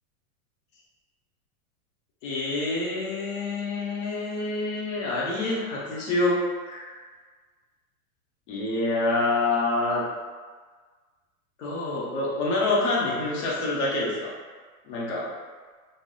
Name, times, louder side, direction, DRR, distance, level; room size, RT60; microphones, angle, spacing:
voice 1, 2.2-6.4 6.7-6.9 8.5-10.0 11.6-14.3 14.9-15.2, left 2 dB, 55° left, -5 dB, 0.8 m, -27 dB
2.6 x 2.0 x 2.3 m, 1.5 s
supercardioid pair, 145°, 45 cm